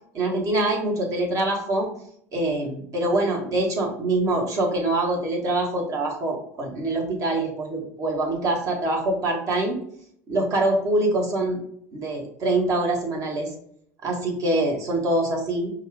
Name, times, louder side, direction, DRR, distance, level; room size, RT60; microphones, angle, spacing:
voice 1, 0.1-1.9 2.3-9.8 10.3-11.6 11.9-13.5 14.0-15.7, right 2 dB, 40° right, 1 dB, 1.4 m, -24 dB
5.2 x 2.5 x 3.3 m, 0.67 s
hypercardioid pair, 80°, 8 cm